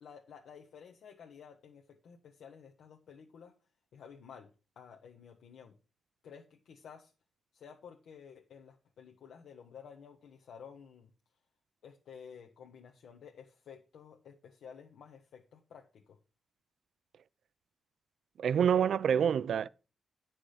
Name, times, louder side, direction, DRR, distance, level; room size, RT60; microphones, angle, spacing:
voice 1, 0.0-3.5 3.9-4.5 4.8-5.8 6.2-7.1 7.5-11.1 11.8-16.2, left 7 dB, 80° left, 1.1 m, -53 dB
voice 2, 18.4-19.7, right 8 dB, 65° right, 0.3 m, -27 dB
10.5 x 6.1 x 4.9 m
wide cardioid pair, 150°, 0 cm